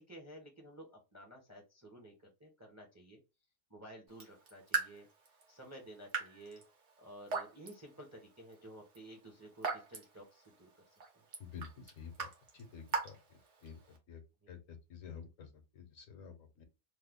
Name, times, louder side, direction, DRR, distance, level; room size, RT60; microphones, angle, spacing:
voice 1, 0.0-3.2 3.7-5.1 5.5-6.6 7.0-10.7, right 1 dB, 15° right, 1 dB, 0.6 m, -53 dB
Raindrop / Drip, 4.1-14.0, right 4 dB, 65° right, 1.3 m, -43 dB
voice 2, 11.4-14.2 14.5-16.6, left 7 dB, 75° left, 6 dB, 1.1 m, -51 dB
3.1 x 2.2 x 3.5 m, 0.28 s
omnidirectional pair, 1.4 m